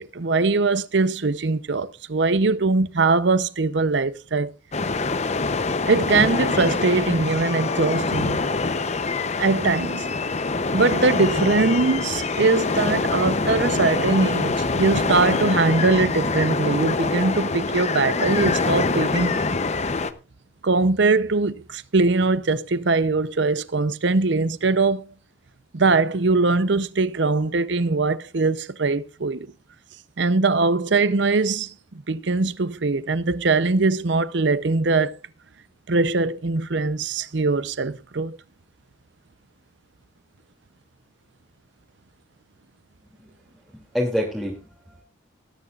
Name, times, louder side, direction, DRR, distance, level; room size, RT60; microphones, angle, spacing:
voice 1, 0.0-4.5 5.9-8.4 9.4-10.1 10.7-19.4 20.6-25.1 25.7-29.5 30.2-35.1 35.9-38.4, right 3 dB, 60° right, 0.7 m, -21 dB
sound 1, 4.7-20.1, left 3 dB, 35° left, 0.8 m, -24 dB
voice 2, 43.7-45.0, equal, 5° right, 2.7 m, -27 dB
20.0 x 11.0 x 2.5 m
head